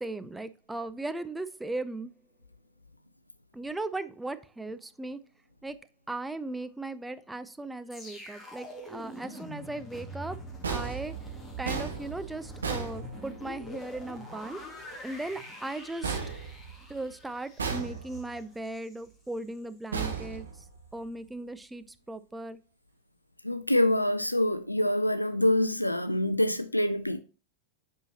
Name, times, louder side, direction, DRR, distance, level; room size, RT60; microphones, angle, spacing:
voice 1, 0.0-2.1 3.5-5.2 5.6-5.8 6.1-10.4 10.7-11.1 11.6-14.6 15.0-16.2 16.9-20.5 20.9-22.6, right 2 dB, 5° right, 0.5 m, -37 dB
sound 1, 7.9-19.0 19.3-19.6, right 1 dB, 15° left, 2.0 m, -44 dB
sound 2, 10.6-13.7 16.0-17.1 17.6-18.4 19.9-21.0, right 5 dB, 70° right, 1.3 m, -35 dB
voice 2, 23.4-27.2, left 1 dB, 85° left, 0.4 m, -26 dB
7.9 x 5.6 x 2.8 m
figure-of-eight pair, 90°, 0 cm